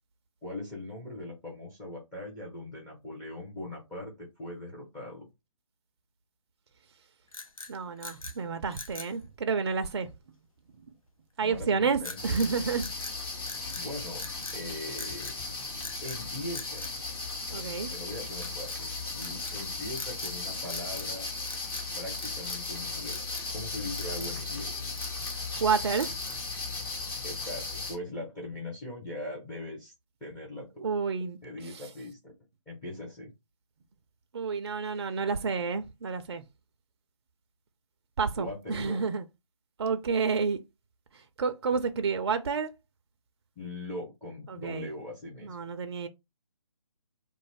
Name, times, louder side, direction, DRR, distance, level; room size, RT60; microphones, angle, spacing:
voice 1, 0.4-5.3 11.4-12.4 13.7-14.2 14.5-15.3 16.0-16.9 17.5-17.6 17.9-21.2 22.0-24.8 27.2-29.9 30.2-30.9 31.4-32.2 32.7-33.3 38.4-39.0 43.6-45.5, left 1 dB, 10° left, 0.6 m, -40 dB
sound 1, 7.3-8.4 8.7-9.2 12.0-12.5 12.8-13.9 14.2-14.6 15.0-15.4 15.8-16.2 16.5-17.7 18.4-18.8 19.2-19.6 19.9-20.4 20.6-21.1 21.4-21.9 22.2-22.7 23.1-23.5 23.9-24.4 24.8-25.5 26.0-26.5, left 3 dB, 85° left, 0.6 m, -43 dB
voice 2, 7.7-10.1 11.4-12.9 17.5-17.9 25.6-26.1 30.8-31.4 31.6-31.8 34.3-36.4 38.2-39.2 39.8-40.6 41.1-42.7 44.5-44.9 45.4-46.1, right 5 dB, 50° right, 0.4 m, -30 dB
sound 2, 12.2-27.9, left 3 dB, 45° left, 1.2 m, -36 dB
2.4 x 2.0 x 3.3 m
figure-of-eight pair, 145°, 17 cm